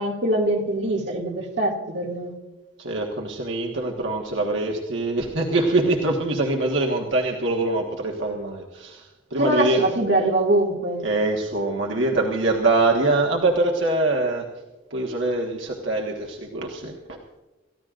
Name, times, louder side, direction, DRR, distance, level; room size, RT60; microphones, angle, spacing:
voice 1, 0.0-2.3 9.4-11.0, right 1 dB, 60° right, -1 dB, 2.3 m, -23 dB
voice 2, 2.8-9.8 11.0-14.4 14.9-17.2, right 2 dB, 80° right, 0 dB, 1.5 m, -24 dB
28.5 x 14.5 x 2.5 m, 1.2 s
head